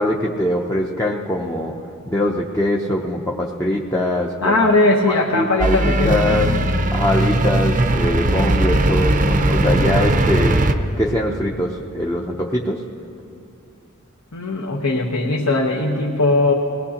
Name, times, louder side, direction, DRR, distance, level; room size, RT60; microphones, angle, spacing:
voice 1, 0.0-1.7 2.1-4.7 5.1-6.5 6.9-10.6 11.0-12.8, left 1 dB, 15° left, -1 dB, 0.6 m, -22 dB
voice 2, 4.4-6.6 14.3-16.5, left 2 dB, 75° left, -1 dB, 1.1 m, -19 dB
sound 1, 5.6-10.7, right 1 dB, 35° right, 0.6 m, -18 dB
21.0 x 18.0 x 2.9 m, 2.7 s
head